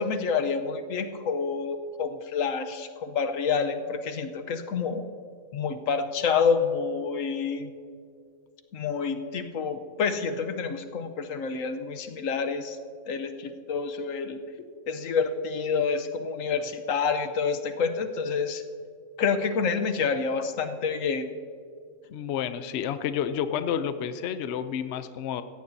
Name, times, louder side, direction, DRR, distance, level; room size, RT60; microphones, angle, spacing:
voice 1, 0.0-5.0 5.5-7.7 8.7-12.8 13.1-14.4 14.9-18.6 19.2-21.2, left 5 dB, 80° left, 8 dB, 1.2 m, -28 dB
voice 2, 22.1-25.4, left 8 dB, 65° left, 11 dB, 0.8 m, -30 dB
17.0 x 14.5 x 2.7 m, 2.2 s
omnidirectional pair, 1.3 m